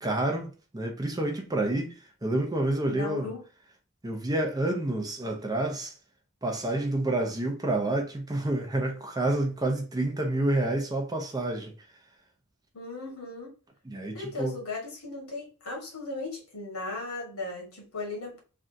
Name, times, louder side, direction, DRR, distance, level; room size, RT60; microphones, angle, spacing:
voice 1, 0.0-3.3 4.0-5.9 6.4-11.7 13.9-14.6, right 1 dB, 20° right, 0.6 m, -29 dB
voice 2, 2.9-3.4 12.7-13.5 14.1-18.4, left 2 dB, 85° left, 1.4 m, -37 dB
3.3 x 2.5 x 2.6 m
head